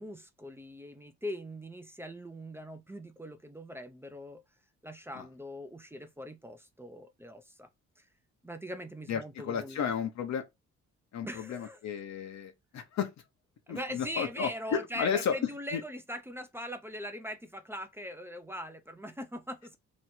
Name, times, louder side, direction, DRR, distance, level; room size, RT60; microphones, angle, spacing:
voice 1, 0.0-4.4 4.8-7.7 8.0-8.1 8.4-9.9 11.2-11.8 13.7-19.8, equal, 10° right, 0.6 m, -41 dB
voice 2, 9.1-10.4 11.1-13.1 13.7-15.4 15.7-15.8, left 7 dB, 65° left, 0.9 m, -33 dB
3.1 x 2.6 x 4.3 m
cardioid pair, 90°, 30 cm